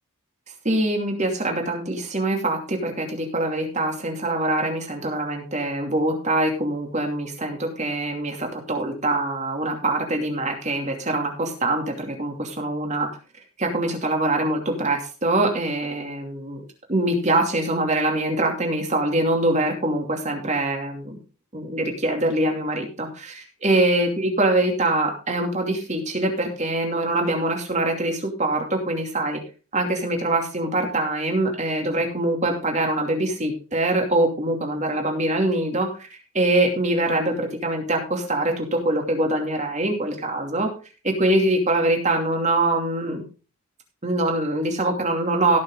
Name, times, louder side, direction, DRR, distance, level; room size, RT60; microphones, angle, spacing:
voice 1, 0.6-13.1 13.6-16.6 16.9-21.2 21.5-29.4 29.7-35.9 36.3-40.7 41.0-43.2 44.0-45.6, right 2 dB, 30° right, 2 dB, 2.8 m, -24 dB
17.5 x 6.6 x 3.8 m, 0.35 s
head